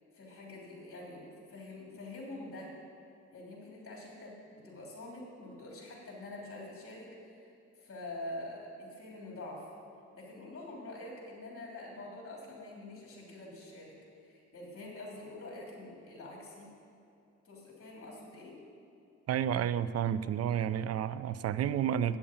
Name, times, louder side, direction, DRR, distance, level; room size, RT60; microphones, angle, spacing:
voice 1, 0.1-2.7 3.3-7.5 7.8-9.7 10.1-13.9 14.2-16.7 17.4-18.6, left 2 dB, 45° left, -2 dB, 3.2 m, -46 dB
voice 2, 19.3-22.2, right 9 dB, 55° right, 14 dB, 0.5 m, -31 dB
8.5 x 7.1 x 8.7 m, 2.6 s
cardioid pair, 90°, 30 cm